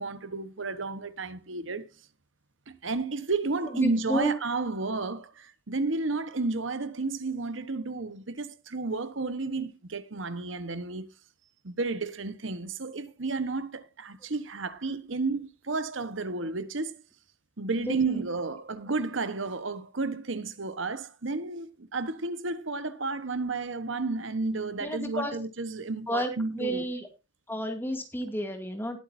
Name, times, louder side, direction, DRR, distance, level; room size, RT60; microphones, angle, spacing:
voice 1, 0.0-1.9 2.7-11.1 11.6-16.9 17.6-26.8, right 3 dB, 80° right, 1.3 m, -32 dB
voice 2, 3.7-4.4 17.9-18.2 24.8-25.4 26.1-27.1 27.5-29.0, equal, 10° left, 2.3 m, -31 dB
19.0 x 8.6 x 2.7 m
head